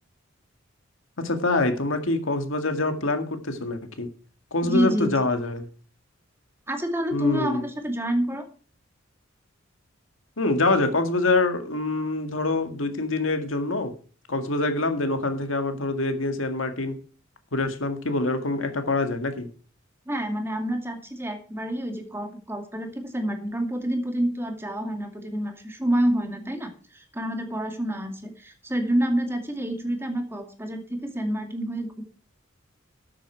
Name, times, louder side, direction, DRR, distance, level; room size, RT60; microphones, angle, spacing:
voice 1, 1.2-4.1 4.5-5.7 7.1-7.7 10.4-13.9 14.3-17.0 17.5-19.5, left 2 dB, 75° left, 7 dB, 2.0 m, -25 dB
voice 2, 4.6-5.1 6.7-8.5 20.1-32.0, right 1 dB, 10° right, 4 dB, 2.3 m, -28 dB
12.5 x 8.6 x 4.5 m, 0.39 s
head